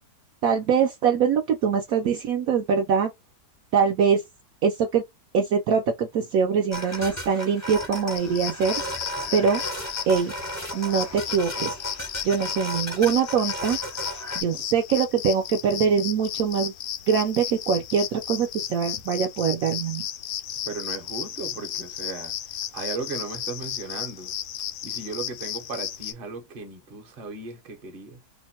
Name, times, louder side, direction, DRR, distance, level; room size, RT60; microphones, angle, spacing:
voice 1, 0.4-3.1 3.7-4.2 4.6-5.0 5.3-8.8 9.3-9.6 10.1-10.3 10.7-11.7 12.2-16.7 17.1-20.1, right 6 dB, 70° right, 0.9 m, -23 dB
sound 1, 6.7-14.4, equal, 15° left, 0.6 m, -34 dB
sound 2, 8.1-26.1, left 11 dB, 70° left, 1.0 m, -34 dB
voice 2, 20.6-24.4 24.8-28.2, right 4 dB, 45° right, 0.9 m, -36 dB
2.9 x 2.1 x 4.2 m
omnidirectional pair, 1.8 m